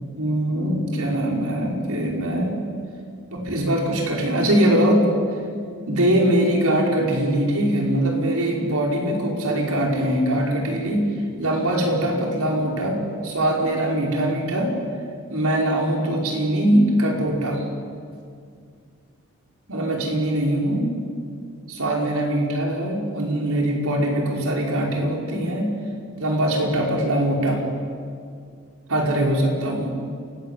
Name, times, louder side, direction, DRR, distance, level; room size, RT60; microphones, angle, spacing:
voice 1, 0.2-2.6 3.3-5.1 5.9-11.1 11.4-14.7 15.3-17.6 19.7-20.9 21.7-25.7 26.2-27.6 28.9-29.9, right 1 dB, 80° right, 0 dB, 5.5 m, -22 dB
28.0 x 19.5 x 8.5 m, 2.2 s
head